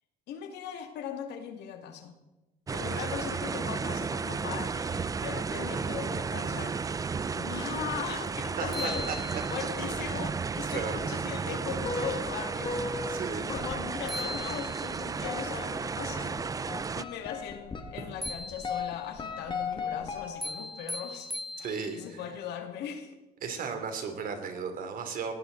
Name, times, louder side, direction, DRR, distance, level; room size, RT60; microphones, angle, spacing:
voice 1, 0.3-2.1 2.7-13.1 13.4-16.4 17.0-21.3 21.6-21.7 21.9-23.2, left 8 dB, 80° left, 5 dB, 2.3 m, -39 dB
sound 1, 2.7-17.0, right 5 dB, 20° right, 0.4 m, -33 dB
sound 2, 8.3-8.4 8.7-9.8 13.7-13.8 14.1-15.1 18.2-19.1 20.4-22.1, left 1 dB, ahead, 0.9 m, -39 dB
voice 2, 8.6-9.4 10.7-11.0 13.1-13.5 21.6-22.2 23.4-25.3, right 5 dB, 55° right, 6 dB, 3.0 m, -35 dB
sound 3, 11.8-20.8, left 4 dB, 30° left, 2.0 m, -38 dB
18.5 x 17.5 x 4.0 m, 1.0 s
cardioid pair, 110°, 17 cm